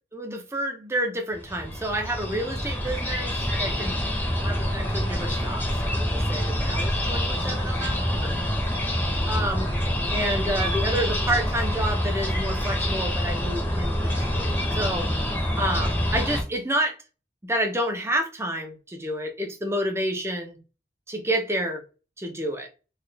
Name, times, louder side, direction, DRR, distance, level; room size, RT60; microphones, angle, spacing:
voice 1, 0.1-4.0 4.4-8.4 9.3-9.7 10.1-15.1 15.6-17.0 17.4-20.6 21.1-21.8 22.2-22.7, right 1 dB, 15° right, 0.7 m, -29 dB
sound 1, 1.3-16.4, equal, 10° left, 0.9 m, -26 dB
4.0 x 2.4 x 3.3 m
head